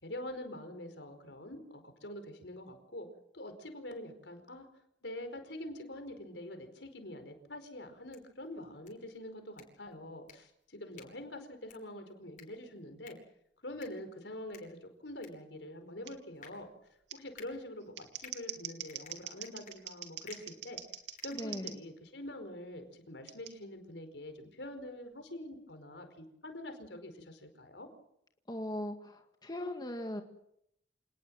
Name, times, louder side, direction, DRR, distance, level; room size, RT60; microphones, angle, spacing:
voice 1, 0.0-3.1 3.3-4.6 5.0-13.2 13.6-16.7 17.1-20.8 21.2-27.9, left 1 dB, 80° left, 7 dB, 4.8 m, -45 dB
sound 1, 7.9-22.0, left 7 dB, 45° left, 6.4 m, -59 dB
Scissors, 16.1-16.2 17.1-17.2 17.8-21.8 23.3-23.5, right 10 dB, 85° right, 2.7 m, -43 dB
voice 2, 21.3-21.8 28.5-30.2, left 1 dB, 25° left, 4 dB, 1.9 m, -39 dB
27.5 x 19.5 x 7.8 m, 0.76 s
head